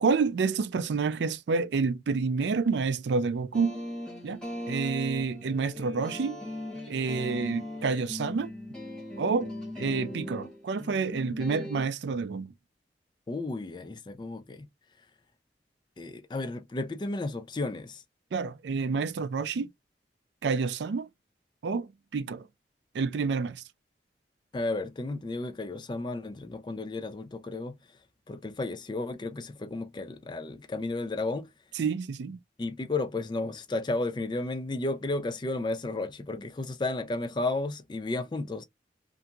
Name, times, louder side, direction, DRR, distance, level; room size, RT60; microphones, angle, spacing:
voice 1, 0.0-3.8 4.2-4.4 4.7-6.4 6.9-8.5 9.2-9.5 9.8-12.5 18.3-19.7 20.4-21.1 21.6-22.5 22.9-23.6 31.7-32.4, right 4 dB, 75° right, 0.4 m, -28 dB
sound 1, 3.5-11.9, left 1 dB, 5° left, 0.9 m, -39 dB
voice 2, 13.3-14.7 16.0-18.0 24.5-27.8 28.3-31.5 32.6-38.6, left 2 dB, 25° left, 0.3 m, -33 dB
2.8 x 2.5 x 2.2 m
head